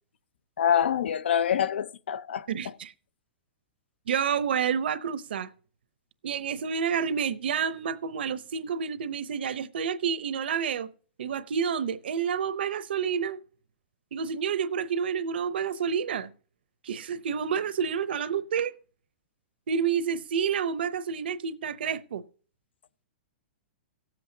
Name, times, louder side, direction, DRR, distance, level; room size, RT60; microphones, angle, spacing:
voice 1, 0.6-2.5, left 9 dB, 85° left, 0.6 m, -25 dB
voice 2, 2.5-2.9 4.1-5.5 6.2-10.9 11.2-13.4 14.1-16.3 16.8-18.7 19.7-22.2, right 7 dB, 70° right, 0.8 m, -29 dB
18.5 x 7.7 x 2.8 m
hypercardioid pair, 180°, 6 cm